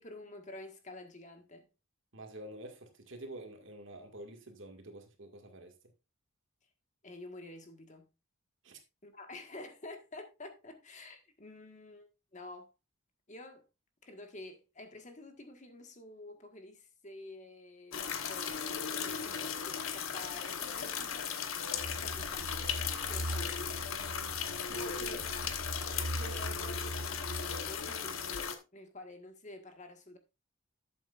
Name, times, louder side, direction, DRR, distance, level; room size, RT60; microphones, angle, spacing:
voice 1, 0.0-1.7 7.0-8.1 9.0-12.7 13.3-13.7 14.0-22.5 22.8-23.7 24.7-25.6 26.2-30.2, left 2 dB, 35° left, 1.5 m, -49 dB
voice 2, 2.1-5.7 8.6-8.8 19.0-19.3 24.7-24.8 25.4-25.5, right 1 dB, 65° right, 2.0 m, -48 dB
sound 1, 17.9-28.6, left 7 dB, 90° left, 1.2 m, -37 dB
sound 2, 21.7-28.3, right 1 dB, 80° right, 0.9 m, -41 dB
12.0 x 7.8 x 2.5 m
head